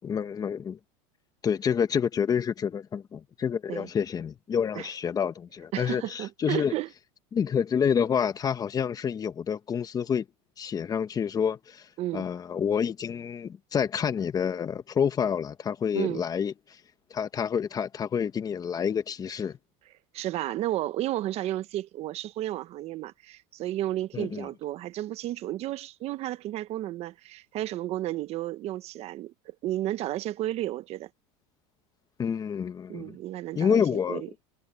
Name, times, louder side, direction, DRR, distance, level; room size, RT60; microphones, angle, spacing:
voice 1, 0.0-0.8 1.4-6.7 7.3-10.2 10.6-11.8 12.1-16.5 17.1-19.6 24.1-24.5 32.2-33.2 33.5-34.2, left 7 dB, 25° left, 1.2 m, -28 dB
voice 2, 5.7-6.9 12.0-12.3 15.9-16.2 20.1-31.1 32.9-34.3, right 14 dB, 40° right, 1.0 m, -32 dB
supercardioid pair, 130°, 16 cm